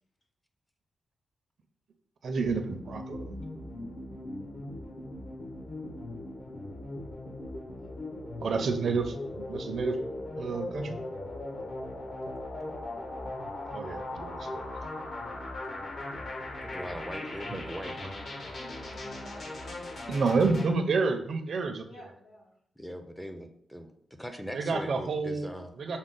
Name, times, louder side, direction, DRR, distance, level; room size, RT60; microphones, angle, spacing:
voice 1, 2.2-3.3 7.6-7.7 8.4-10.0 10.4-11.0 13.7-14.7 17.5-17.8 20.1-21.9 24.5-26.0, right 4 dB, 65° right, 6 dB, 0.5 m, -29 dB
sound 1, 2.4-20.7, left 2 dB, 55° left, 0.9 m, -39 dB
voice 2, 16.6-18.2 22.8-23.9 24.2-25.7, equal, 5° left, 6 dB, 0.4 m, -40 dB
voice 3, 18.6-19.8 21.8-22.6 23.8-23.9, equal, 85° left, -4 dB, 1.3 m, -51 dB
6.1 x 2.0 x 3.8 m, 0.67 s
wide cardioid pair, 120°, 0 cm